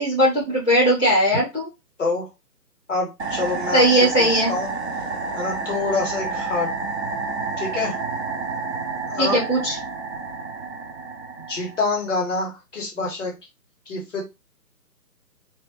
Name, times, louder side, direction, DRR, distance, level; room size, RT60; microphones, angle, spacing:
voice 1, 0.0-1.7 3.7-4.5 9.2-9.7, equal, 5° left, -14 dB, 1.1 m, -19 dB
voice 2, 2.0-2.3 2.9-4.7 5.3-6.7 7.6-8.0 9.1-9.4 11.5-13.3 13.9-14.2, left 3 dB, 50° left, -2 dB, 1.7 m, -26 dB
sound 1, 3.2-12.0, right 4 dB, 45° right, 0.7 m, -29 dB
3.1 x 2.9 x 2.9 m, 0.25 s
figure-of-eight pair, 155°, 49 cm